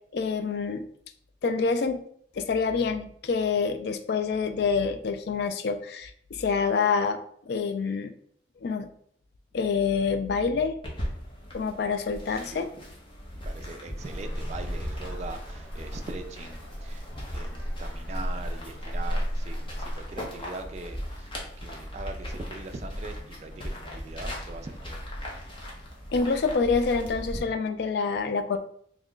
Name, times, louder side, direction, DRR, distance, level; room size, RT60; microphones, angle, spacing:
voice 1, 0.1-0.8 1.4-2.0 2.3-7.2 7.5-8.1 8.6-8.9 9.5-10.8 11.5-12.7 26.1-28.6, left 5 dB, 60° left, 8 dB, 0.3 m, -27 dB
sound 1, 10.8-27.4, equal, 25° left, 0.7 m, -38 dB
voice 2, 12.3-12.7 13.3-17.1 17.3-25.0, right 3 dB, 35° right, 7 dB, 0.3 m, -41 dB
Traffic noise roadway noise, 14.0-20.1, equal, 10° left, 1.2 m, -35 dB
3.0 x 2.4 x 3.7 m, 0.65 s
head